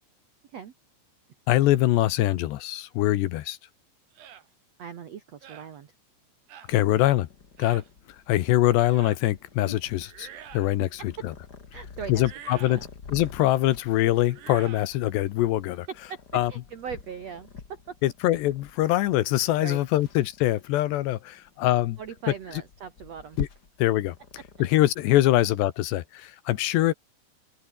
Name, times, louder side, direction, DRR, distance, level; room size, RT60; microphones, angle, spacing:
voice 1, 1.5-3.6 6.7-7.3 7.6-7.8 8.3-11.3 12.1-15.9 16.3-16.5 18.0-22.0 23.4-23.5 23.8-24.2 24.6-26.9, left 15 dB, 75° left, 3.0 m, -23 dB
sound 1, 4.2-4.5 5.4-5.7 6.5-6.7 7.6-7.9 8.9-9.2 10.0-10.8 12.1-12.8 14.3-14.9, right 10 dB, 65° right, 4.3 m, -46 dB
voice 2, 4.8-5.9 10.8-11.2 11.7-12.2 12.5-12.9 15.9-16.2 16.5-18.0 19.6-20.0 22.0-23.4, right 7 dB, 90° right, 1.4 m, -40 dB
Purr, 6.6-25.3, left 5 dB, 40° left, 1.4 m, -46 dB
open air
omnidirectional pair, 5.5 m